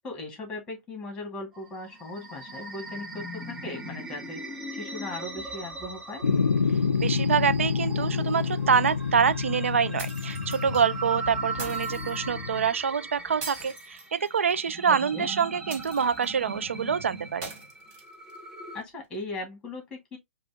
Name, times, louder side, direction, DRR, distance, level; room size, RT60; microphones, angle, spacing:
voice 1, 0.0-4.4 4.7-6.2 14.9-15.3 18.7-20.2, left 2 dB, 10° left, 2.0 m, -38 dB
sound 1, 1.5-18.8, right 2 dB, 10° right, 1.0 m, -39 dB
sound 2, 6.2-12.7, left 5 dB, 80° left, 0.5 m, -28 dB
voice 2, 7.0-17.5, right 7 dB, 70° right, 0.4 m, -26 dB
sound 3, 10.0-10.8 11.6-12.2 13.4-14.6 15.7-16.4 17.4-18.4, right 4 dB, 30° right, 2.3 m, -41 dB
5.0 x 2.5 x 3.4 m
figure-of-eight pair, 120°, 7 cm